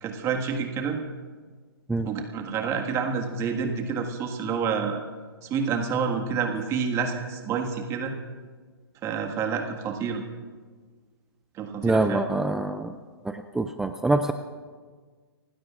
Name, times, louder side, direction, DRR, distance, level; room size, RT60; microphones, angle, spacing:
voice 1, 0.0-1.0 2.0-5.0 5.4-8.1 9.0-10.2 11.5-12.2, right 6 dB, 20° right, 3 dB, 1.7 m, -28 dB
voice 2, 11.8-12.9 13.3-14.3, right 2 dB, 5° right, 8 dB, 0.3 m, -25 dB
29.0 x 16.0 x 2.5 m, 1.5 s
hypercardioid pair, 145°, 14 cm